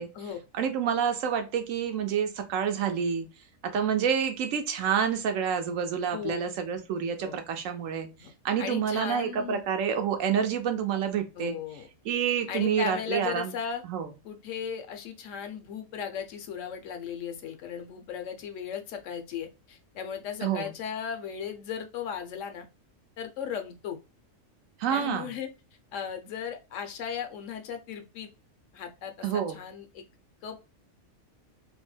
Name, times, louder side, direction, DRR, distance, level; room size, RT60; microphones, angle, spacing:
voice 1, 0.5-3.3 3.6-8.1 8.4-11.6 12.0-13.5 13.8-14.1 20.4-20.7 24.8-25.3 29.2-29.6, right 7 dB, 75° right, 6 dB, 1.0 m, -28 dB
voice 2, 6.1-6.5 7.2-7.4 8.2-8.3 8.6-9.6 11.4-11.9 12.5-13.8 14.2-22.7 23.2-24.0 24.9-25.5 25.9-28.3 28.7-30.0 30.4-30.6, left 7 dB, 75° left, 6 dB, 0.9 m, -36 dB
2.7 x 2.1 x 3.0 m, 0.29 s
omnidirectional pair, 1.4 m